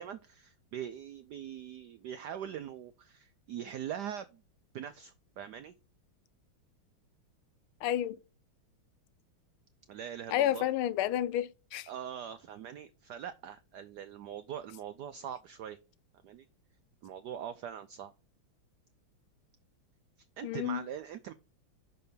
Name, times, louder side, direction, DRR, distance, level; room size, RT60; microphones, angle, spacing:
voice 1, 0.0-4.4 4.7-5.7 9.9-10.7 11.9-15.8 16.2-16.5 17.0-18.1 20.4-21.3, right 9 dB, 85° right, 0.9 m, -42 dB
voice 2, 7.8-8.2 10.3-11.9 20.4-20.8, left 12 dB, 80° left, 1.5 m, -30 dB
6.3 x 4.4 x 6.6 m
omnidirectional pair, 2.3 m